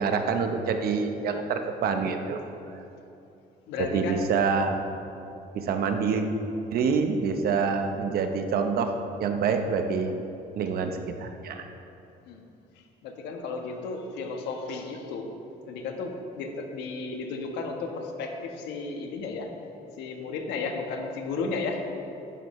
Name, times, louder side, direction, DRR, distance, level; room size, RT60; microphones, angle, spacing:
voice 1, 0.0-2.4 3.8-4.8 5.5-6.3 6.7-8.9 9.2-10.1 10.5-11.7, right 5 dB, 65° right, 6 dB, 1.1 m, -26 dB
voice 2, 3.7-4.3 12.3-12.4 13.0-15.3 15.7-19.5 20.0-21.8, left 4 dB, 90° left, 3 dB, 1.4 m, -33 dB
15.0 x 11.5 x 3.2 m, 2.8 s
cardioid pair, 110°, 17 cm